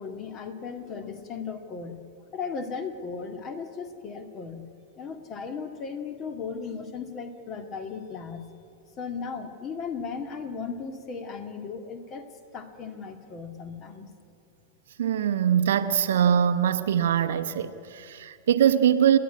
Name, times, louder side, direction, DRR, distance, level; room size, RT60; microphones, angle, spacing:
voice 1, 0.0-2.0 2.3-4.7 5.0-8.5 9.0-12.3 12.5-14.1, left 5 dB, 30° left, 1.9 m, -36 dB
voice 2, 15.0-19.2, right 9 dB, 60° right, 0.8 m, -22 dB
29.0 x 10.0 x 9.4 m
figure-of-eight pair, 90°, 0 cm